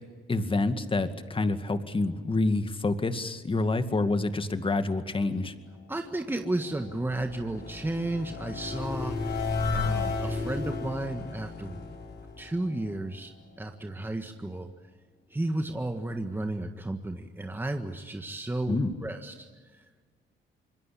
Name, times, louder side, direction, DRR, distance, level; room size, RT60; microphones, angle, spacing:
voice 1, 0.3-5.5 18.7-19.1, left 2 dB, 25° left, 9 dB, 2.2 m, -27 dB
voice 2, 5.9-9.4 9.7-11.9 12.4-13.3 13.6-14.7 15.3-19.5 19.7-19.8, right 2 dB, 10° right, 5 dB, 1.7 m, -33 dB
sound 1, 6.2-13.4, left 4 dB, 55° left, 5.2 m, -34 dB
26.5 x 22.0 x 8.7 m, 1.5 s
cardioid pair, 90°, 20 cm